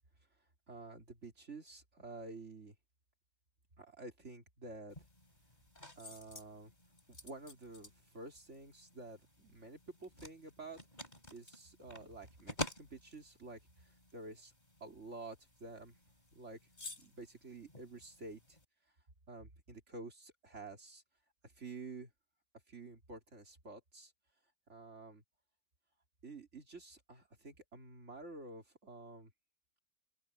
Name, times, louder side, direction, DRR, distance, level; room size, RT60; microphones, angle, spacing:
voice 1, 0.7-2.7 3.8-5.0 6.0-6.7 7.1-10.8 11.3-14.5 14.8-16.0 16.3-16.6 17.0-18.6 19.3-21.0 21.4-22.1 22.7-24.1 24.7-25.2 26.2-29.3, right 3 dB, 35° right, 3.3 m, -50 dB
sound 1, 4.9-18.7, left 1 dB, 20° left, 4.5 m, -51 dB
open air
omnidirectional pair, 2.1 m